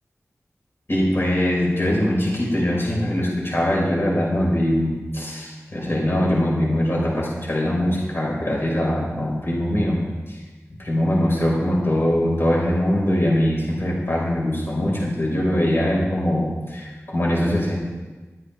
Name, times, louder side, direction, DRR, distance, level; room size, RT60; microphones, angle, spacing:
voice 1, 0.9-10.0 10.8-17.7, left 1 dB, 50° left, -4 dB, 5.7 m, -22 dB
22.5 x 9.6 x 3.7 m, 1.2 s
wide cardioid pair, 50°, 5 cm